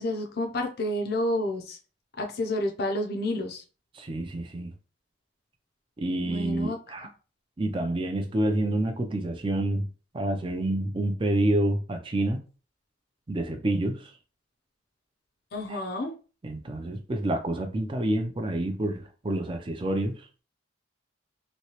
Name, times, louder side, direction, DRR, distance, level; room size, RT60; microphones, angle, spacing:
voice 1, 0.0-1.8 2.2-3.6 6.2-6.8 15.5-16.1, left 1 dB, 50° left, 0.6 m, -29 dB
voice 2, 3.9-4.7 6.0-7.1 7.6-9.9 10.1-12.4 13.3-14.1 15.7-15.8 16.4-20.1, right 1 dB, 25° right, 0.4 m, -28 dB
3.1 x 2.7 x 2.9 m
head